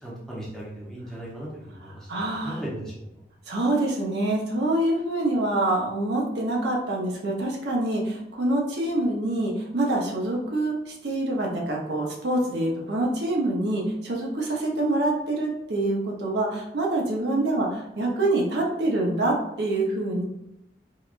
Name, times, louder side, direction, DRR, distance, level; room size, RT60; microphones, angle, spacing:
voice 1, 0.0-2.1 2.4-3.2, right 1 dB, 5° left, -6 dB, 0.7 m, -37 dB
voice 2, 1.8-2.6 3.5-20.2, right 2 dB, 70° right, -2 dB, 0.7 m, -26 dB
4.6 x 2.2 x 2.5 m, 0.85 s
head